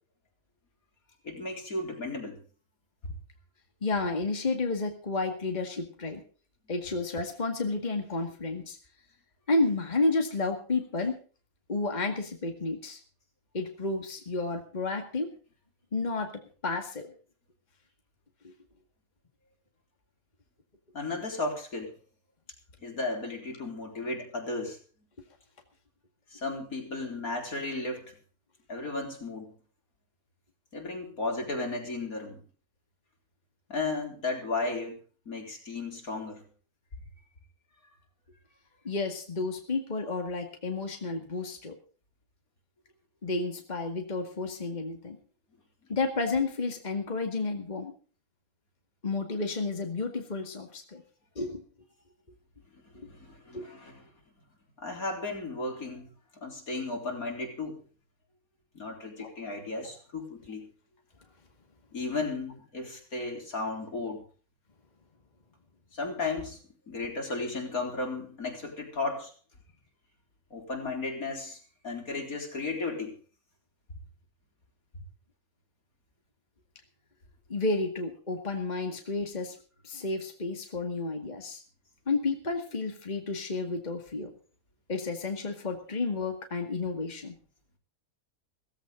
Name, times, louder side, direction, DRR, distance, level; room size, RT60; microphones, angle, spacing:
voice 1, 1.2-2.4 20.9-21.9 22.8-24.8 26.3-28.1 28.7-29.5 30.7-32.4 33.7-35.0 35.3-36.4 52.9-54.0 54.8-56.1 56.4-57.8 58.7-60.7 61.9-64.2 65.9-66.6 66.9-69.3 70.5-71.6 71.8-73.1, left 3 dB, 70° left, 2 dB, 4.5 m, -34 dB
voice 2, 3.8-6.2 6.7-8.8 9.5-11.2 11.7-13.0 13.5-15.3 15.9-17.1 18.4-18.5 38.8-41.8 43.2-45.2 45.9-47.9 49.0-51.0 51.4-51.6 53.0-53.1 53.5-53.7 59.2-59.3 77.5-79.6 79.8-81.6 82.1-84.3 84.9-87.4, left 3 dB, 30° left, 4 dB, 2.1 m, -31 dB
16.5 x 15.5 x 3.9 m, 0.40 s
omnidirectional pair, 1.5 m